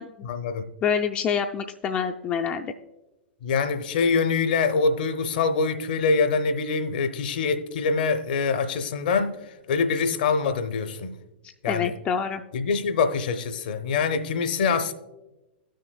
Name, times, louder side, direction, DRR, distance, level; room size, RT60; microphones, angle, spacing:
voice 1, 0.2-0.7 3.4-11.1 11.6-11.9 12.5-14.9, left 5 dB, 55° left, 0.7 m, -24 dB
voice 2, 0.8-2.7 11.7-12.4, left 7 dB, 20° left, 0.4 m, -26 dB
16.0 x 6.4 x 2.3 m
figure-of-eight pair, 100°, 6 cm